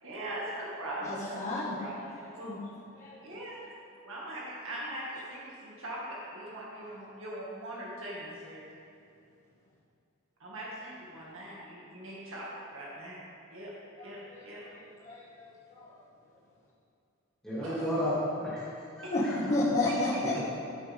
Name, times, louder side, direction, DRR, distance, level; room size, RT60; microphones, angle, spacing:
voice 1, 0.0-2.5 3.2-3.6 4.0-8.6 10.4-13.2 13.5-13.7 14.0-14.6 17.6-17.9 19.0-19.1, right 1 dB, 65° right, -6 dB, 2.1 m, -41 dB
voice 2, 1.0-1.8 2.2-2.6 3.0-3.2 14.0-15.9 19.1-19.2 19.5-20.3, left 2 dB, 35° left, -10 dB, 1.8 m, -32 dB
voice 3, 17.4-18.6 19.0-19.4 20.3-20.4, equal, ahead, -11 dB, 1.8 m, -32 dB
13.5 x 8.2 x 3.6 m, 2.6 s
head